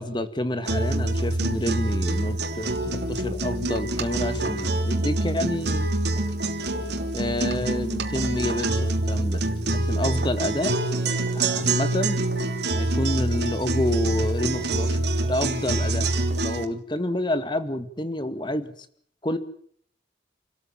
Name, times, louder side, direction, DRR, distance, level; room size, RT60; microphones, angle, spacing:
voice 1, 0.0-5.9 7.1-10.7 11.3-12.2 12.7-15.0 15.3-16.1 16.4-18.7 19.2-19.4, left 1 dB, 25° left, 11 dB, 2.0 m, -28 dB
sound 1, 0.6-16.6, right 2 dB, 65° right, 3.0 m, -26 dB
29.0 x 13.5 x 8.9 m, 0.63 s
head